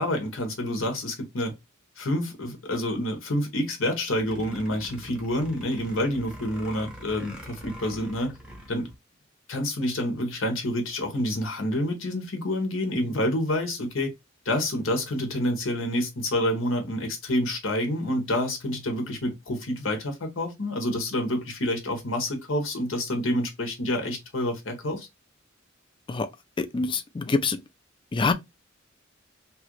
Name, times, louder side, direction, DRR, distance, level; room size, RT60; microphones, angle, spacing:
voice 1, 0.0-1.5 2.0-8.4 8.7-8.9 9.5-14.1 14.4-25.1, left 1 dB, 80° left, 1.0 m, -28 dB
sound 1, 4.1-8.9, equal, 5° right, 0.7 m, -44 dB
voice 2, 26.6-27.6 28.1-28.3, left 4 dB, 25° left, 0.4 m, -25 dB
2.9 x 2.4 x 3.0 m
head